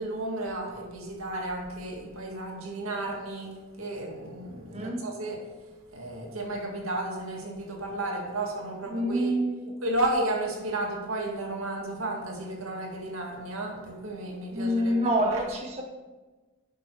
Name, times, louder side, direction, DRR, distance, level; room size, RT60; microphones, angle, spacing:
voice 1, 0.0-5.4 5.9-9.4 9.8-15.4, right 1 dB, 85° right, 0 dB, 2.0 m, -33 dB
voice 2, 4.7-5.1 8.9-9.7 14.5-15.8, right 1 dB, 30° right, 0 dB, 0.8 m, -27 dB
11.5 x 5.7 x 4.5 m, 1.2 s
head